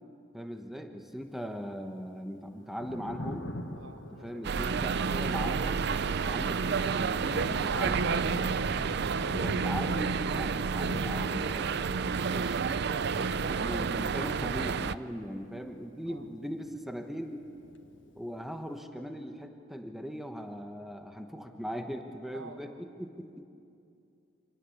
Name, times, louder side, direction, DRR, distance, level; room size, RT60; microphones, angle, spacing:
voice 1, 0.3-3.5 4.1-5.8 6.2-8.3 9.1-12.6 13.0-17.4 18.2-23.4, equal, ahead, 5 dB, 1.1 m, -40 dB
Thunder, 2.6-17.0 17.3-18.5, left 1 dB, 65° left, 1.5 m, -44 dB
voice 2, 3.8-4.7 16.1-16.3 22.3-22.8, right 3 dB, 90° right, 7 dB, 1.5 m, -51 dB
sound 1, 4.4-15.0, right 5 dB, 55° right, 0.5 m, -30 dB
26.0 x 19.0 x 7.2 m, 2.6 s
head